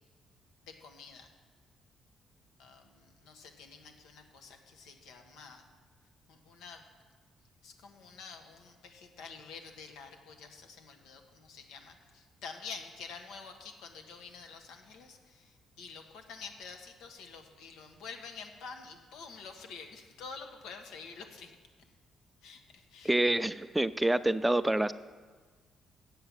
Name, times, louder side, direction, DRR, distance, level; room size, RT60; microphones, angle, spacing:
voice 1, 0.7-1.3 2.6-5.6 6.3-6.8 7.6-21.5 22.4-23.1, left 5 dB, 90° left, 4 dB, 1.2 m, -48 dB
voice 2, 23.0-24.9, right 1 dB, 10° right, 14 dB, 0.3 m, -27 dB
9.0 x 7.6 x 7.2 m, 1.5 s
cardioid pair, 90°, 0 cm